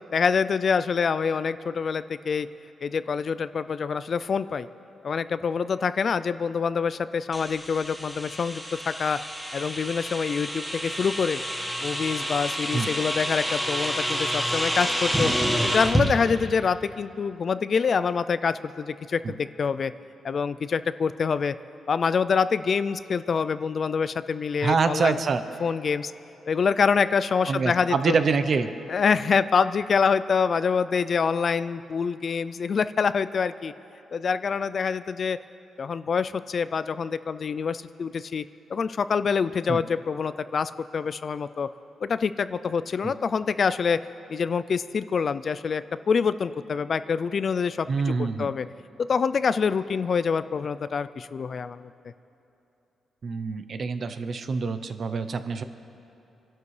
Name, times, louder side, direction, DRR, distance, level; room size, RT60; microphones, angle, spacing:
voice 1, 0.1-2.5 2.8-4.7 5.0-9.2 9.5-11.4 11.8-15.3 15.6-19.9 20.2-21.5 21.9-25.2 25.6-26.1 26.5-28.1 28.9-33.7 34.1-35.4 35.8-38.4 38.7-41.7 42.0-44.0 44.3-48.7 49.0-51.9, left 6 dB, 45° left, 14 dB, 0.3 m, -26 dB
sound 1, 7.3-16.1, equal, 5° right, 1.4 m, -28 dB
voice 2, 24.6-25.4 27.5-28.7 39.7-39.8 43.0-43.1 47.9-48.5 53.2-55.6, right 5 dB, 45° right, 10 dB, 0.6 m, -26 dB
27.0 x 12.0 x 3.2 m, 2.9 s
cardioid pair, 140°, 0 cm